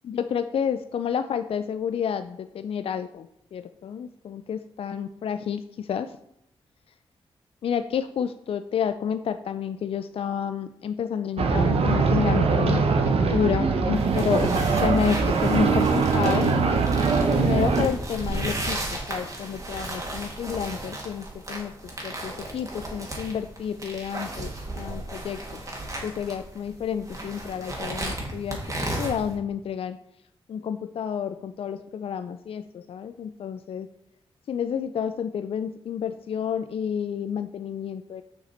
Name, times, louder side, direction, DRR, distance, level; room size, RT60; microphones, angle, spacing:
voice 1, 0.1-6.1 7.6-12.8 13.3-16.8 17.3-25.6 26.0-30.0 30.5-33.9 34.5-38.2, left 7 dB, 70° left, 10 dB, 0.4 m, -30 dB
sound 1, 11.4-17.9, right 4 dB, 75° right, 0.9 m, -22 dB
sound 2, 13.9-29.4, right 1 dB, 35° right, 1.9 m, -35 dB
6.7 x 5.8 x 4.3 m, 0.78 s
wide cardioid pair, 105°, 10 cm